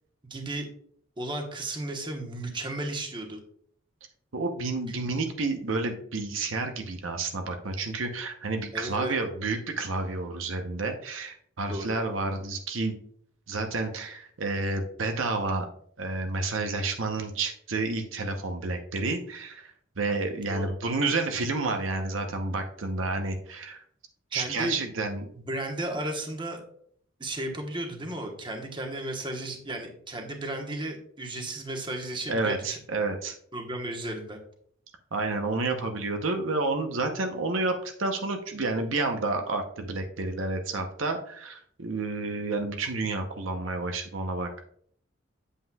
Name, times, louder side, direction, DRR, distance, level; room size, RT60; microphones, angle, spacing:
voice 1, 0.2-0.7 1.2-3.4 8.7-9.2 11.7-12.0 20.3-20.6 24.3-24.8 25.3-26.6 27.2-32.8 33.5-34.4, right 1 dB, 25° right, 3 dB, 1.1 m, -34 dB
voice 2, 4.3-13.0 13.5-15.7 16.0-23.8 24.3-25.3 32.3-33.3 35.1-44.6, right 3 dB, 80° right, 5 dB, 0.8 m, -30 dB
8.3 x 7.6 x 2.3 m, 0.63 s
head